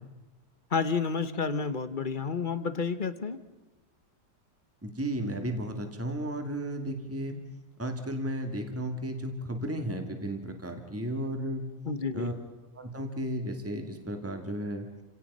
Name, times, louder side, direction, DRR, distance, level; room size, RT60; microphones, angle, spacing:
voice 1, 0.7-3.4 11.9-12.3, left 5 dB, 35° left, 12 dB, 1.2 m, -30 dB
voice 2, 4.8-7.4 7.8-11.6 12.1-12.3 12.7-14.9, right 1 dB, 10° right, 5 dB, 2.2 m, -34 dB
29.0 x 17.5 x 5.5 m, 1.1 s
omnidirectional pair, 1.7 m